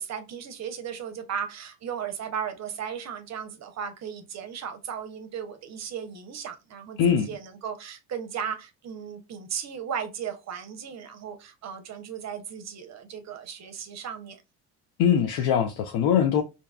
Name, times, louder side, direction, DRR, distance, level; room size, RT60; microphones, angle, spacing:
voice 1, 0.0-14.4, right 7 dB, 45° right, 0.6 m, -36 dB
voice 2, 7.0-7.3 15.0-16.4, left 8 dB, 75° left, 0.5 m, -22 dB
2.6 x 2.3 x 2.2 m
supercardioid pair, 80°, 38 cm